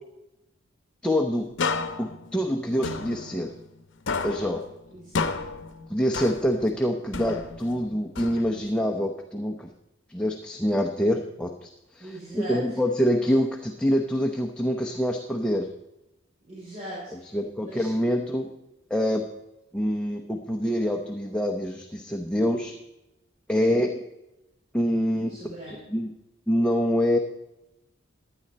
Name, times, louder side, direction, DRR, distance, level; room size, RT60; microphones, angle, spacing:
voice 1, 1.0-1.5 2.0-3.5 4.2-4.6 5.9-9.7 10.1-15.7 17.3-18.5 18.9-19.3 19.7-22.7 23.5-23.9 24.7-25.3 25.7-26.1 26.5-27.2, equal, 5° left, 2 dB, 0.8 m, -25 dB
sound 1, 1.6-3.8 4.1-6.7 7.1-8.8, left 4 dB, 65° left, 0.8 m, -32 dB
voice 2, 4.9-5.3 12.0-12.8 16.5-17.3 17.6-17.9 25.3-25.8, right 1 dB, 40° right, -8 dB, 5.3 m, -40 dB
16.0 x 10.5 x 4.3 m, 0.92 s
head